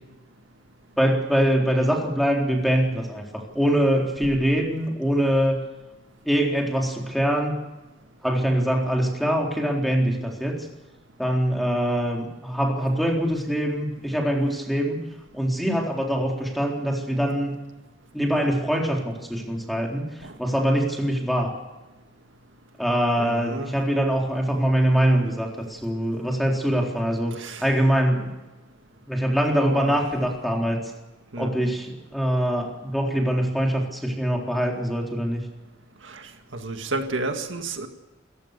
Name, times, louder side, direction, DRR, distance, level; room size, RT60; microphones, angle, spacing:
voice 1, 1.0-5.6 6.3-7.6 8.2-10.7 11.2-15.0 15.3-17.6 18.1-21.6 22.8-28.3 29.1-30.9 31.4-35.4, equal, ahead, 0 dB, 3.9 m, -23 dB
voice 2, 23.2-23.7 27.3-27.7 29.6-30.0 31.3-31.6 36.0-37.9, right 2 dB, 70° right, 6 dB, 2.0 m, -31 dB
28.5 x 15.0 x 6.8 m, 1.1 s
head